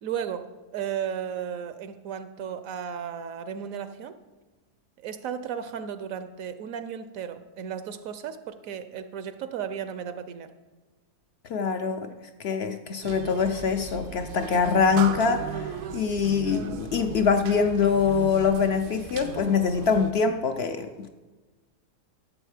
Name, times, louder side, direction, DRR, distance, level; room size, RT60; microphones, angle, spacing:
voice 1, 0.0-4.2 5.0-10.5, right 8 dB, 70° right, 11 dB, 0.9 m, -34 dB
voice 2, 11.5-21.1, left 6 dB, 70° left, 8 dB, 0.6 m, -24 dB
sound 1, 13.0-20.1, right 7 dB, 90° right, 1.3 m, -37 dB
12.5 x 7.3 x 4.9 m, 1.2 s
omnidirectional pair, 1.7 m